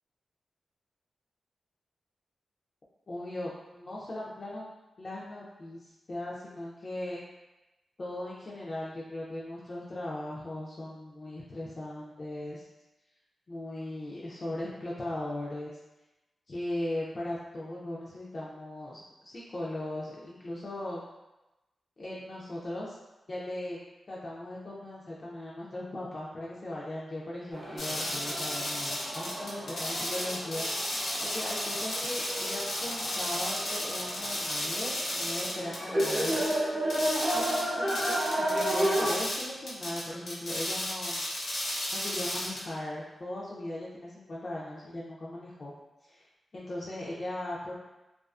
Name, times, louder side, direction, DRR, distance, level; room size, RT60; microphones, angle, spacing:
voice 1, 3.1-4.6 5.0-7.2 8.0-12.6 13.5-15.7 16.5-21.0 22.0-23.0 23.3-23.8 24.1-30.7 31.2-36.4 37.3-41.3 41.9-45.7 46.0-46.3 46.5-47.7, left 1 dB, 40° left, -6 dB, 0.4 m, -38 dB
sound 1, 27.5-39.1, right 1 dB, 35° right, 0.5 m, -33 dB
sound 2, 27.8-36.6 36.9-42.6, left 1 dB, 80° left, 0.8 m, -34 dB
2.4 x 2.3 x 2.3 m, 1.0 s
wide cardioid pair, 105°, 0 cm